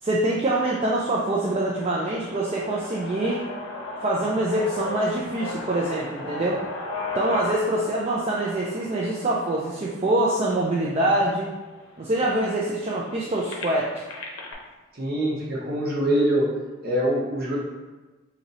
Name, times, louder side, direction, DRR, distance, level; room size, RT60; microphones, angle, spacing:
voice 1, 0.0-3.4 4.0-6.6 7.1-11.5 12.0-13.9, right 1 dB, 30° right, -4 dB, 0.3 m, -25 dB
sound 1, 1.1-11.1 11.7-11.8 12.1-14.5, left 2 dB, 80° left, 0.6 m, -36 dB
voice 2, 14.9-16.5 16.8-17.6, right 1 dB, 50° right, -5 dB, 0.9 m, -24 dB
3.0 x 2.7 x 3.9 m, 1.2 s
head